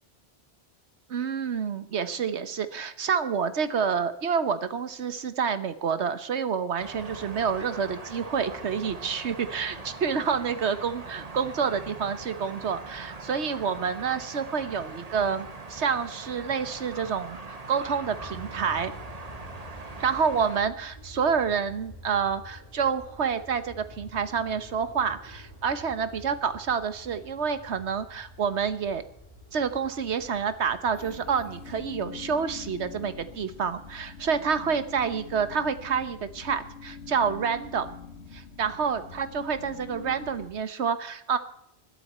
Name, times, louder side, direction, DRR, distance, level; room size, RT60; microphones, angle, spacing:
voice 1, 1.1-18.9 20.0-29.0 29.5-37.9 38.3-41.4, right 6 dB, 80° right, 12 dB, 1.4 m, -28 dB
sound 1, 6.8-20.6, right 3 dB, 35° right, 1.4 m, -41 dB
Aircraft, 17.8-34.0, left 1 dB, 20° left, 3.0 m, -49 dB
sound 2, 30.9-40.5, left 5 dB, 75° left, 1.9 m, -44 dB
20.5 x 12.0 x 4.3 m, 0.72 s
omnidirectional pair, 1.1 m